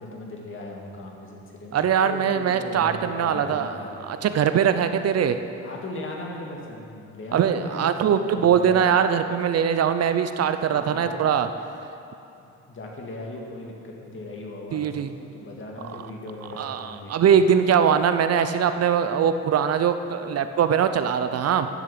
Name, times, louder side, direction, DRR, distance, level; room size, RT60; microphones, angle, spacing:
voice 1, 0.0-4.2 5.6-8.8 10.7-11.2 12.4-13.7 14.0-17.3, left 2 dB, 40° left, -1 dB, 2.2 m, -38 dB
voice 2, 1.7-5.4 7.3-11.5 14.7-15.1 15.9-16.0 16.5-21.7, right 8 dB, 55° right, 10 dB, 0.6 m, -22 dB
10.0 x 6.6 x 7.7 m, 2.8 s
cardioid pair, 90°, 30 cm